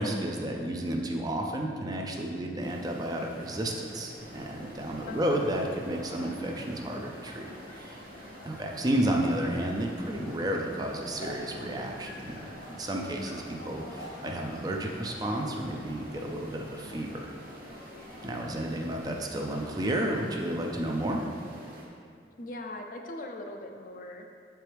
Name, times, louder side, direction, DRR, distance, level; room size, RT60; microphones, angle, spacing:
voice 1, 0.0-7.5 7.7-8.0 8.4-12.5 12.8-17.3 18.2-21.2, right 1 dB, 20° right, 1 dB, 0.4 m, -32 dB
sound 1, 2.6-21.9, equal, 50° right, 1.0 m, -49 dB
sound 2, 4.1-20.2, left 1 dB, 80° left, 1.3 m, -48 dB
voice 2, 5.1-5.5 22.4-24.3, left 2 dB, 45° left, 3 dB, 0.4 m, -40 dB
7.0 x 4.5 x 3.3 m, 2.3 s
head